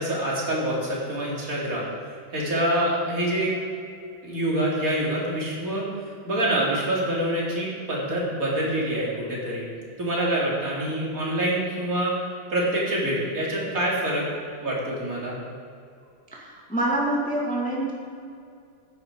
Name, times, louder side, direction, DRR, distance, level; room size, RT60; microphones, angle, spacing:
voice 1, 0.0-1.9 2.3-3.5 4.2-5.9 6.2-9.6 10.0-12.1 12.5-14.3 14.6-15.4, right 1 dB, 40° right, -5 dB, 3.5 m, -26 dB
voice 2, 16.3-17.9, right 1 dB, 5° left, -3 dB, 1.8 m, -26 dB
15.0 x 10.5 x 4.7 m, 2.4 s
omnidirectional pair, 2.3 m